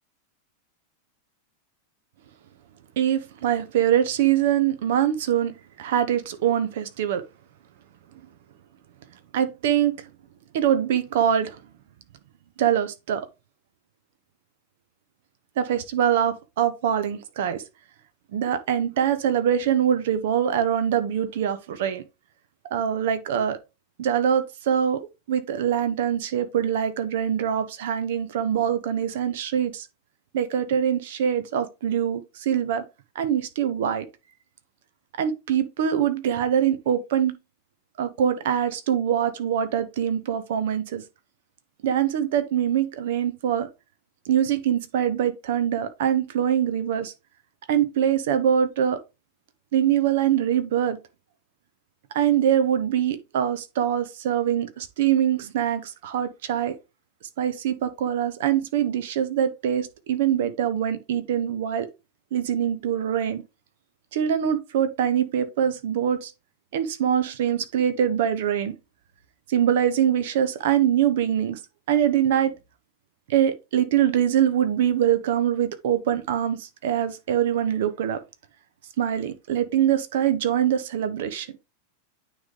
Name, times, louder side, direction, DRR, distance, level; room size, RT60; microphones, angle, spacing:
voice 1, 3.0-7.2 9.3-10.1 10.5-11.6 12.6-13.3 15.6-17.6 18.3-22.0 22.7-23.6 24.0-25.0 25.3-29.9 30.3-32.8 33.1-34.0 35.2-37.4 38.0-41.0 41.8-43.7 44.3-47.1 47.7-49.0 49.7-51.0 52.1-56.7 57.4-61.9 62.3-63.4 64.1-66.3 66.7-68.8 69.5-71.6 71.9-72.5 73.3-78.2 79.0-81.5, right 9 dB, 55° right, 0.9 m, -23 dB
9.3 x 3.4 x 3.7 m
figure-of-eight pair, 90°, 0 cm